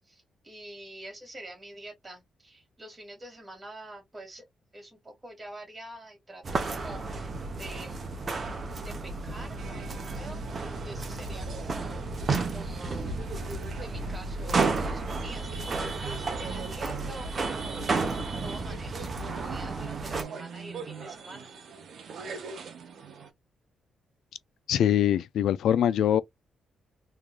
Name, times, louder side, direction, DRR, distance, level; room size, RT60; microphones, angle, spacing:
voice 1, 0.0-4.4 4.7-7.3 7.6-8.0 8.8-12.2 12.5-13.2 13.8-18.1 18.4-21.5, right 1 dB, 15° right, 2.2 m, -46 dB
sound 1, 6.4-20.2, right 3 dB, 35° right, 0.9 m, -32 dB
sound 2, 9.6-23.3, right 5 dB, 60° right, 1.0 m, -42 dB
voice 2, 24.7-26.2, left 10 dB, 75° left, 0.4 m, -23 dB
3.7 x 3.2 x 2.3 m
cardioid pair, 150°, 0 cm